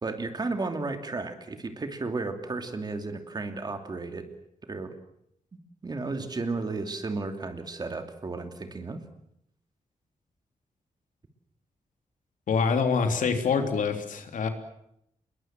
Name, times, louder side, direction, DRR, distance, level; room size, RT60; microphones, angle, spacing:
voice 1, 0.0-4.3 4.6-4.9 5.8-9.0, right 3 dB, 30° right, 7 dB, 2.8 m, -33 dB
voice 2, 12.5-14.5, left 5 dB, 85° left, 6 dB, 3.4 m, -25 dB
28.0 x 21.5 x 7.6 m, 0.75 s
wide cardioid pair, 145°, 13 cm